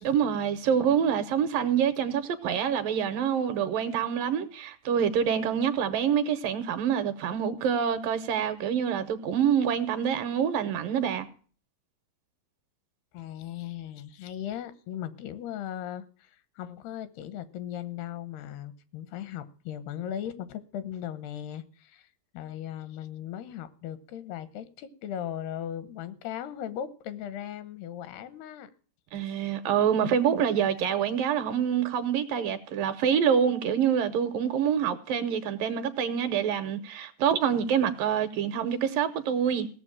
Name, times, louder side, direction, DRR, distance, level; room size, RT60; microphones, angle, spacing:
voice 1, 0.0-11.3 29.1-39.7, right 8 dB, 70° right, 2.3 m, -26 dB
voice 2, 13.1-22.1 22.3-28.7 29.2-29.3, left 10 dB, 80° left, 3.0 m, -38 dB
17.0 x 7.0 x 8.5 m
omnidirectional pair, 4.6 m